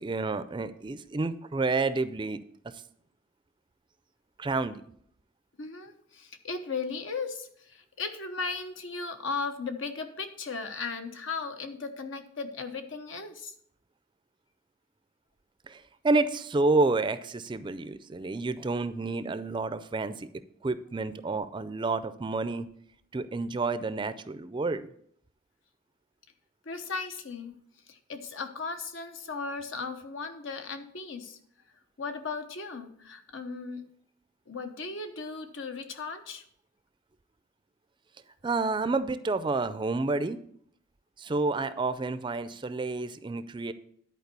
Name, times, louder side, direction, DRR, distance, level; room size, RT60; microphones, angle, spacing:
voice 1, 0.0-2.4 4.4-4.8 15.7-20.3 20.6-22.7 23.1-24.9 38.4-40.4 41.2-43.7, right 3 dB, 25° right, 13 dB, 0.4 m, -29 dB
voice 2, 5.6-13.5 26.6-27.5 27.9-31.4 32.0-33.8 34.5-36.4, left 4 dB, 75° left, 7 dB, 1.0 m, -36 dB
10.5 x 4.5 x 6.8 m, 0.67 s
head